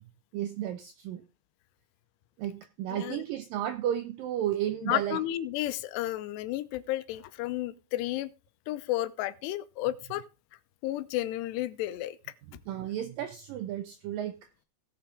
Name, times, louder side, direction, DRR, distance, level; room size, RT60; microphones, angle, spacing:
voice 1, 0.3-1.2 2.4-5.2 12.7-14.4, right 11 dB, 85° right, 2.0 m, -33 dB
voice 2, 2.9-3.2 4.8-8.3 8.7-10.2 10.8-12.2, left 15 dB, 85° left, 2.8 m, -32 dB
17.5 x 5.8 x 3.6 m
omnidirectional pair, 4.8 m